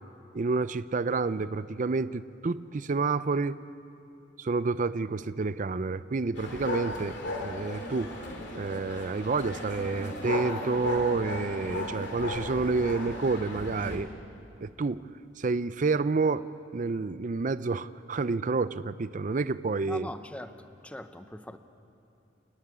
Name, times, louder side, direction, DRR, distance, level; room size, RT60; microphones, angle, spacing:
voice 1, 0.3-3.6 4.4-8.1 8.5-14.1 14.6-15.0 15.4-16.4 16.7-20.1, right 4 dB, 40° right, 15 dB, 0.5 m, -29 dB
sound 1, 6.3-14.0, left 1 dB, 65° left, 2.9 m, -36 dB
voice 2, 19.9-21.6, left 1 dB, 5° left, 9 dB, 0.8 m, -41 dB
29.0 x 9.9 x 9.9 m, 2.7 s
head